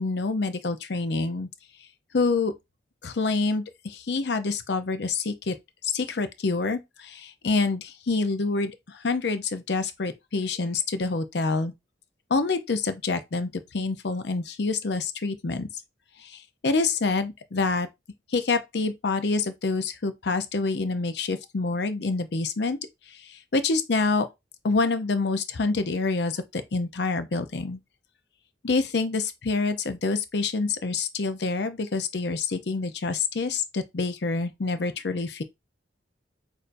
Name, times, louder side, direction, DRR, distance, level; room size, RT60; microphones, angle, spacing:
voice 1, 0.0-1.5 2.1-2.5 3.0-5.5 5.8-11.7 12.3-15.7 16.2-17.9 18.3-22.8 23.1-24.3 24.6-27.8 28.6-35.4, left 3 dB, 60° left, 0.6 m, -27 dB
6.5 x 2.7 x 2.5 m
head